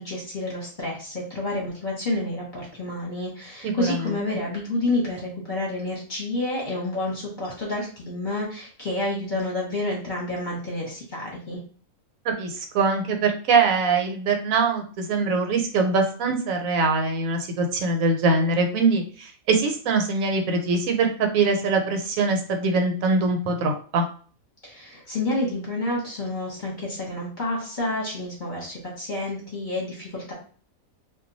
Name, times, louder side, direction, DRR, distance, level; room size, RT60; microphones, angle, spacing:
voice 1, 0.0-11.6 24.6-30.3, left 2 dB, 40° left, -4 dB, 0.9 m, -29 dB
voice 2, 3.6-4.1 12.2-24.0, right 3 dB, 75° right, 3 dB, 1.0 m, -23 dB
2.3 x 2.2 x 3.8 m, 0.42 s
omnidirectional pair, 1.5 m